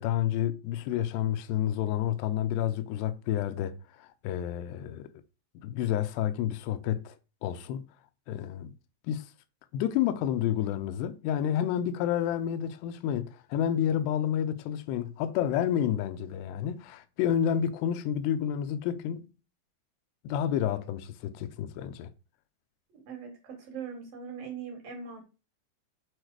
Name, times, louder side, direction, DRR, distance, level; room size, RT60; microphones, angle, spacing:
voice 1, 0.0-5.1 5.6-7.2 7.4-7.9 8.3-8.7 9.0-9.3 9.7-19.3 20.2-22.1, left 10 dB, 85° left, 2.5 m, -30 dB
voice 2, 23.1-25.2, right 6 dB, 55° right, 3.8 m, -40 dB
7.9 x 4.4 x 4.8 m
omnidirectional pair, 5.4 m